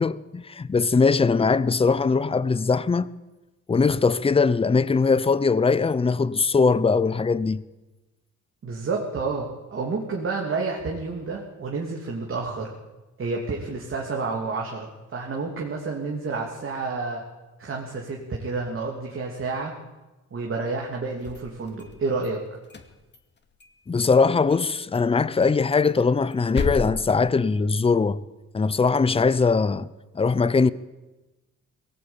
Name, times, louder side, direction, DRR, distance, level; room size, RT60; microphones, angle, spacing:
voice 1, 0.0-3.1 3.7-7.6 23.9-28.2 28.5-29.9 30.1-30.7, left 4 dB, 20° left, 0.7 m, -21 dB
voice 2, 8.6-12.7 13.2-17.2 17.6-19.7 20.3-22.4, right 4 dB, 45° right, 2.9 m, -30 dB
sound 1, 21.1-22.3 22.6-23.8 24.0-24.1 24.5-24.7 24.9-25.0 25.4-28.0, left 4 dB, 35° left, 2.3 m, -34 dB
22.0 x 18.0 x 8.9 m
cardioid pair, 140°, 31 cm